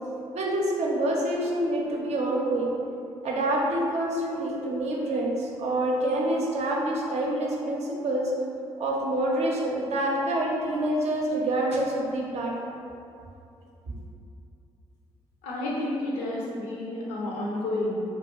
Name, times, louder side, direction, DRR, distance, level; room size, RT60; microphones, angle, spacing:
voice 1, 0.3-2.7 3.2-8.3 8.8-12.8, right 1 dB, 55° right, -2 dB, 0.5 m, -27 dB
voice 2, 15.4-17.9, left 1 dB, 75° left, -4 dB, 0.5 m, -30 dB
2.3 x 2.2 x 2.8 m, 2.6 s
hypercardioid pair, 40°, 14 cm